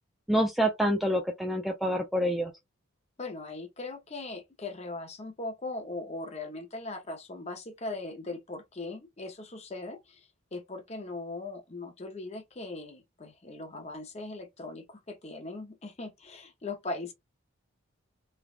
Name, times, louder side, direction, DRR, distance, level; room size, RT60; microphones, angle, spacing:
voice 1, 0.3-2.5, equal, ahead, 0.3 m, -27 dB
voice 2, 3.2-17.1, left 2 dB, 30° left, 0.7 m, -39 dB
3.3 x 2.3 x 2.4 m
head